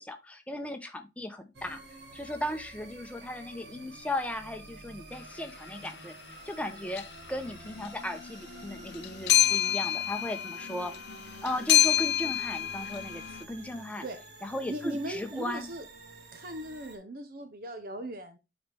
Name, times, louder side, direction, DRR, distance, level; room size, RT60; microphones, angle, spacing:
voice 1, 0.0-1.8 2.1-7.0 7.3-10.9 11.4-13.2 13.5-14.0 14.4-15.7, left 1 dB, 10° left, 0.8 m, -36 dB
sound 1, 1.5-17.0, right 3 dB, 70° right, 1.6 m, -50 dB
sound 2, 5.7-5.9 6.9-7.4 7.6-13.4, left 12 dB, 70° left, 0.4 m, -28 dB
voice 2, 14.7-15.8 16.3-18.4, right 1 dB, 55° right, 0.8 m, -38 dB
8.5 x 4.1 x 3.4 m
head